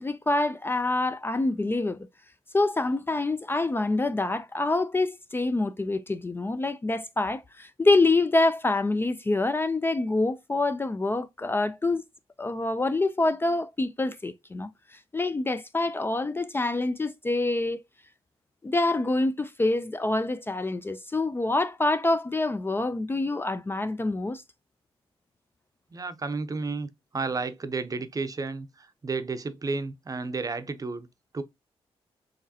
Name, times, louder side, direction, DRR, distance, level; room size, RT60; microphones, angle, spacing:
voice 1, 0.0-2.0 2.5-12.0 12.4-14.7 15.1-17.8 18.6-24.4, left 2 dB, 20° left, 0.4 m, -26 dB
voice 2, 25.9-26.9 27.1-31.1 31.3-31.4, right 4 dB, 35° right, 0.6 m, -32 dB
4.9 x 3.0 x 2.7 m
cardioid pair, 70°, 11 cm